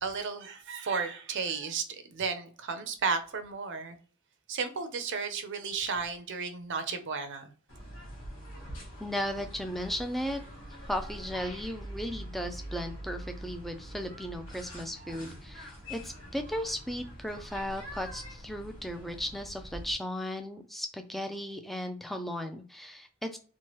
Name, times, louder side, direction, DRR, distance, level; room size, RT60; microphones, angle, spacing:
voice 1, 0.0-4.0 4.5-7.5, right 5 dB, 55° right, 0.5 m, -33 dB
sound 1, 7.7-19.9, equal, 65° left, 1.4 m, -44 dB
voice 2, 9.0-10.4 10.9-23.4, equal, ahead, 0.3 m, -36 dB
3.0 x 2.1 x 3.0 m
head